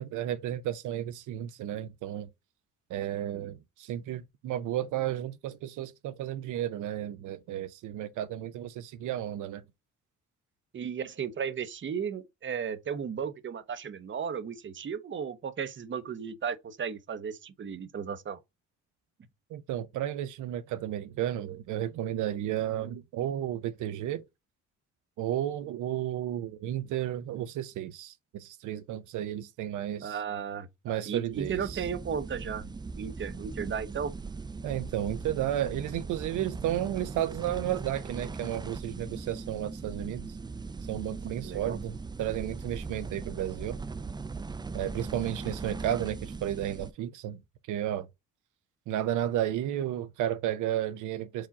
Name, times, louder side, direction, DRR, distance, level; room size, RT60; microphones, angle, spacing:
voice 1, 0.0-2.3 2.9-9.6 19.5-24.2 25.2-30.2 30.8-31.8 34.6-40.4 40.9-43.8 44.7-47.4 47.7-48.1 48.9-51.5, right 11 dB, 80° right, 0.5 m, -33 dB
voice 2, 10.7-18.4 30.0-32.7 33.0-34.1 41.3-41.8, right 7 dB, 40° right, 0.7 m, -35 dB
sound 1, 31.3-46.9, right 4 dB, 15° right, 0.3 m, -39 dB
4.8 x 2.4 x 4.0 m
cardioid pair, 90°, 30 cm